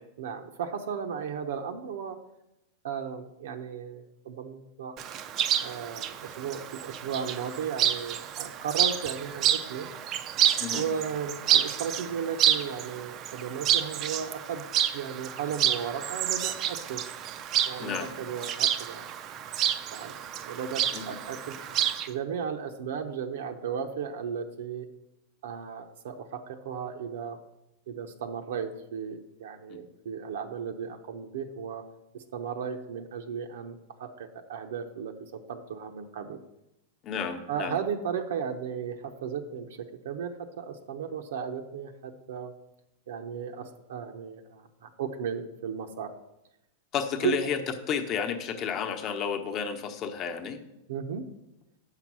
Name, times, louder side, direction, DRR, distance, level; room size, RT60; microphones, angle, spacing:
voice 1, 0.2-2.2 2.8-5.0 5.6-9.9 10.7-14.6 14.9-17.0 17.7-19.0 19.9-21.6 22.1-24.9 25.4-27.4 27.9-31.8 32.1-36.4 37.5-42.5 43.1-46.1 47.2-47.3 50.9-51.2, right 7 dB, 80° right, 5 dB, 0.8 m, -35 dB
Chirp tweet, 5.0-22.1, right 10 dB, 30° right, 0.5 m, -29 dB
voice 2, 17.8-18.1 20.9-21.0 29.7-29.8 37.0-37.8 46.9-47.6 47.9-50.6, left 7 dB, 30° left, 6 dB, 0.9 m, -31 dB
7.9 x 5.8 x 6.1 m, 0.87 s
supercardioid pair, 160°, 0 cm